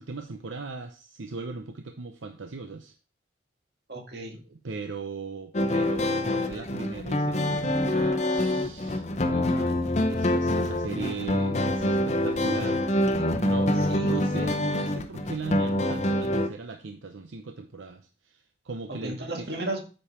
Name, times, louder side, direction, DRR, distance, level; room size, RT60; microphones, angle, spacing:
voice 1, 0.0-2.9 4.5-12.8 13.4-19.5, right 4 dB, 85° right, 6 dB, 0.8 m, -38 dB
voice 2, 3.9-4.4 13.9-14.2 18.9-19.8, right 1 dB, 55° right, 2 dB, 1.9 m, -34 dB
sound 1, 5.5-16.5, left 1 dB, 35° left, 0.8 m, -26 dB
8.8 x 5.3 x 4.4 m, 0.35 s
head